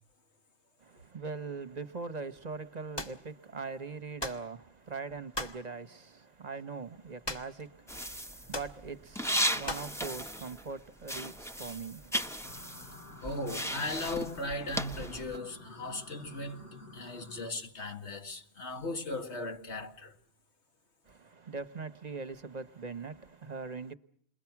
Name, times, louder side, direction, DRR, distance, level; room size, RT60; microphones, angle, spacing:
voice 1, 0.8-12.8 21.1-23.9, right 4 dB, 40° right, 1.1 m, -42 dB
sound 1, 3.0-3.2 4.2-4.5 5.3-5.6 7.2-7.7 7.9-8.0 8.5-8.8 9.7-10.0, left 1 dB, 25° left, 1.7 m, -38 dB
sound 2, 7.9-10.8 11.0-15.4, equal, 5° left, 1.0 m, -36 dB
sound 3, 12.4-17.5, left 2 dB, 60° left, 2.4 m, -51 dB
voice 2, 13.2-20.2, left 2 dB, 85° left, 2.2 m, -38 dB
29.5 x 22.0 x 5.9 m
omnidirectional pair, 1.1 m